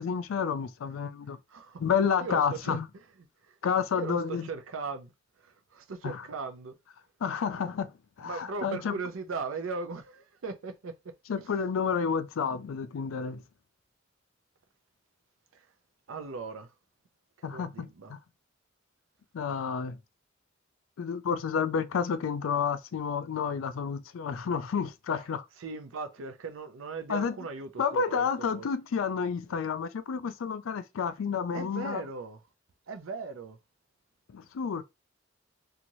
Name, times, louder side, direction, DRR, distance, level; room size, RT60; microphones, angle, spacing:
voice 1, 0.0-1.4 1.8-2.9 3.6-4.5 6.0-6.2 7.2-7.9 8.2-8.9 11.3-13.4 17.4-18.2 19.3-20.0 21.0-25.4 27.1-27.3 27.8-32.0 34.3-34.8, left 6 dB, 80° left, 0.4 m, -30 dB
voice 2, 1.5-1.8 2.2-2.8 3.4-3.5 4.0-5.1 5.4-6.7 8.2-10.9 11.3-11.5 15.5-15.7 16.1-16.7 17.4-18.2 25.6-28.7 31.5-32.4 32.9-33.6, right 4 dB, 85° right, 0.5 m, -38 dB
3.0 x 2.4 x 2.6 m
head